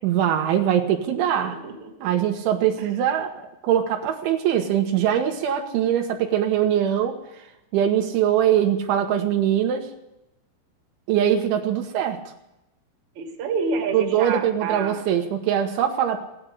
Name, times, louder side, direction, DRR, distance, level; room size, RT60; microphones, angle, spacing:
voice 1, 0.0-1.6 2.0-3.3 3.6-7.2 7.7-9.9 11.1-12.2 13.9-16.2, right 10 dB, 80° right, 3 dB, 3.5 m, -22 dB
voice 2, 1.4-2.3 2.8-2.9 13.2-15.1, right 5 dB, 45° right, 1 dB, 2.8 m, -29 dB
17.0 x 10.0 x 7.9 m, 0.90 s
omnidirectional pair, 5.5 m